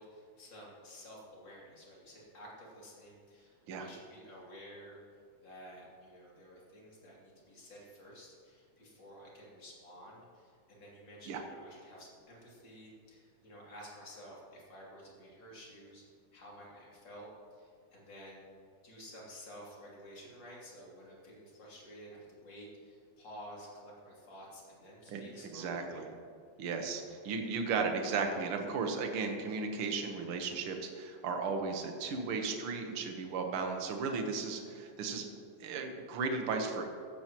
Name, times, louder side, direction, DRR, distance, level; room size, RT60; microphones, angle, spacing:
voice 1, 0.0-5.0 5.4-16.0 16.3-18.4 18.8-26.1, equal, 35° left, -5 dB, 3.4 m, -52 dB
voice 2, 25.5-26.1 26.6-35.2 35.6-37.0, right 4 dB, 55° right, 3 dB, 1.6 m, -35 dB
15.0 x 13.5 x 3.1 m, 2.4 s
omnidirectional pair, 3.7 m